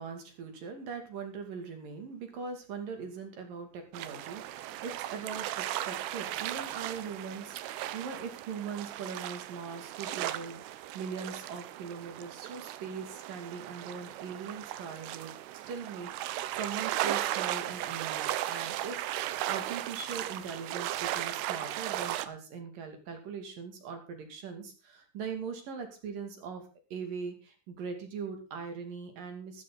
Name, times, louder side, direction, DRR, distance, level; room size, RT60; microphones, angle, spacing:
voice 1, 0.0-15.3 15.7-19.0 19.5-26.6 26.9-29.6, right 5 dB, 50° right, 5 dB, 3.7 m, -41 dB
sound 1, 3.9-22.3, right 14 dB, 80° right, 2.5 m, -36 dB
14.0 x 13.5 x 4.0 m, 0.31 s
omnidirectional pair, 5.6 m